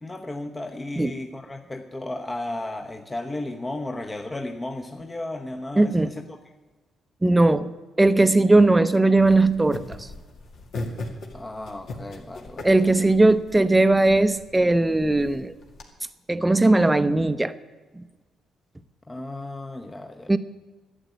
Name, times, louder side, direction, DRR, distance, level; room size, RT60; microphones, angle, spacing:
voice 1, 0.0-5.9 11.3-13.1 19.1-20.3, left 2 dB, 20° left, 1.0 m, -34 dB
voice 2, 5.8-6.1 7.2-7.7 8.0-10.0 12.6-15.5 16.3-17.5 18.0-18.1 20.3-20.4, right 2 dB, 15° right, 0.7 m, -18 dB
sound 1, 9.2-15.8, left 2 dB, 70° left, 2.0 m, -39 dB
11.5 x 8.1 x 9.4 m
cardioid pair, 75°, 0 cm